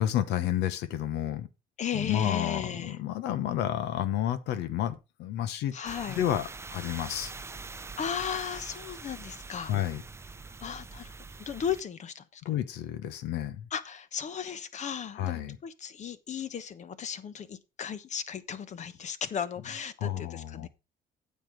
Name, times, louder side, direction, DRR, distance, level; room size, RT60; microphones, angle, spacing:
voice 1, 0.0-1.5 1.9-5.7 6.1-7.3 9.7-10.0 12.4-13.7 15.1-15.6 20.0-20.7, left 11 dB, 90° left, 1.1 m, -30 dB
voice 2, 1.8-3.0 5.7-6.2 8.0-9.7 10.6-11.1 11.4-12.4 13.7-20.7, left 7 dB, 45° left, 1.1 m, -35 dB
sound 1, 5.8-11.8, right 4 dB, 15° right, 0.5 m, -44 dB
9.1 x 7.4 x 4.6 m
cardioid pair, 110°, 17 cm